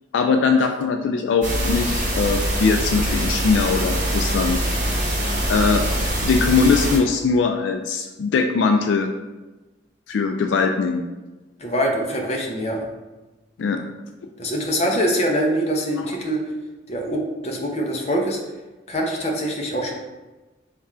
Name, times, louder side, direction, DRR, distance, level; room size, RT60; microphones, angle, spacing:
voice 1, 0.1-4.6 5.5-5.8 6.2-9.1 10.1-11.0 13.6-13.8, left 4 dB, 75° left, 4 dB, 0.3 m, -20 dB
sound 1, 1.4-7.0, right 1 dB, 40° right, 0.9 m, -23 dB
voice 2, 11.6-12.9 14.4-16.4 16.9-18.4 18.9-19.9, equal, 35° left, 0 dB, 0.6 m, -24 dB
3.5 x 2.4 x 4.2 m, 1.1 s
head